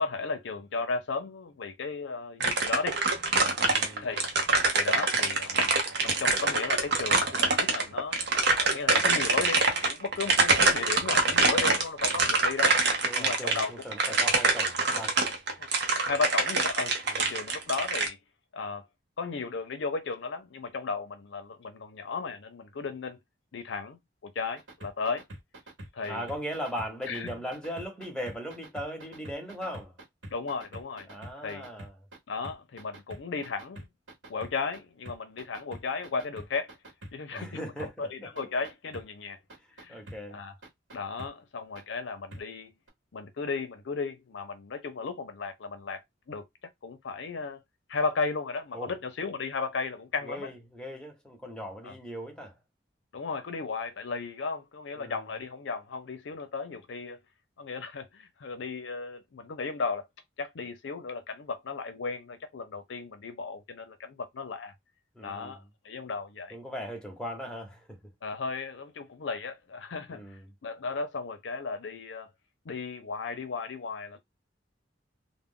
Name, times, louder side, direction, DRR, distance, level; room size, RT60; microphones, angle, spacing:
voice 1, 0.0-3.0 4.0-4.3 4.7-5.8 6.0-8.2 8.6-12.8 13.1-13.7 14.1-14.2 15.6-15.7 16.1-18.2 18.5-18.9 19.2-23.2 23.5-25.2 25.9-26.3 27.1-27.3 30.3-31.1 31.4-31.7 32.3-33.9 34.3-36.7 37.1-39.4 39.8-40.0 40.3-40.5 40.9-42.7 43.1-46.4 46.8-47.6 47.9-50.5 51.8-51.9 53.1-57.2 57.6-60.1 60.4-64.7 65.2-66.6 68.2-70.2 70.6-72.3 72.7-74.2, left 4 dB, 75° left, 0.5 m, -35 dB
sound 1, 2.4-18.1, right 3 dB, 65° right, 0.7 m, -25 dB
voice 2, 3.5-4.2 13.0-15.3 17.1-17.3 26.1-30.0 31.1-31.9 37.3-38.3 39.9-40.4 48.7-48.9 50.2-52.6 55.0-55.3 65.1-65.6 66.5-68.0 70.1-70.5, equal, 5° left, 0.8 m, -39 dB
sound 2, 24.6-32.2 32.4-34.8 35.1-37.4 37.8-37.9 38.4-39.0 39.5-40.2 40.6-41.3 41.8-41.9 42.3-42.4 42.9-43.0, right 1 dB, 85° right, 1.0 m, -44 dB
2.3 x 2.1 x 3.6 m
head